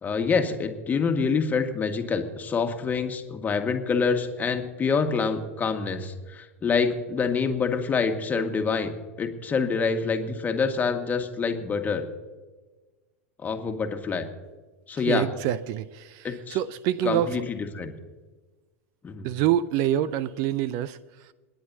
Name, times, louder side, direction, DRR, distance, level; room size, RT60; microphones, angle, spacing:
voice 1, 0.0-8.9 9.2-12.1 13.4-14.3 14.9-15.3 16.2-16.6 17.0-17.9 19.0-19.3, left 5 dB, 20° left, 6 dB, 1.8 m, -26 dB
voice 2, 15.1-17.4 19.2-21.3, right 11 dB, 50° right, 18 dB, 0.6 m, -26 dB
29.0 x 10.5 x 2.8 m, 1.3 s
hypercardioid pair, 90°, 7 cm